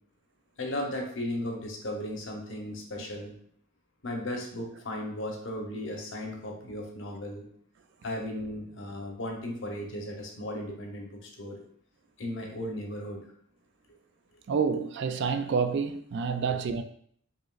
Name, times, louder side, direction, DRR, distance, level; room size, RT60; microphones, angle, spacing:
voice 1, 0.6-3.4 4.0-7.5 8.0-11.6 12.2-13.2, left 1 dB, 60° left, 0.9 m, -36 dB
voice 2, 14.5-16.8, right 5 dB, 55° right, 0.3 m, -28 dB
5.0 x 3.0 x 2.4 m
head